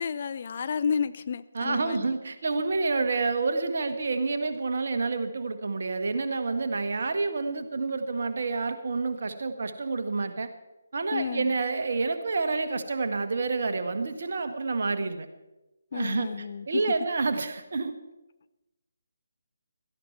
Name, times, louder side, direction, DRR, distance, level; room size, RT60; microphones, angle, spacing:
voice 1, 0.0-2.1 11.1-11.5 15.9-16.8, left 6 dB, 40° left, 14 dB, 0.5 m, -31 dB
voice 2, 1.5-10.5 10.9-15.3 15.9-17.9, right 3 dB, 50° right, 7 dB, 1.4 m, -28 dB
17.0 x 13.5 x 4.6 m, 1.0 s
figure-of-eight pair, 150°, 0 cm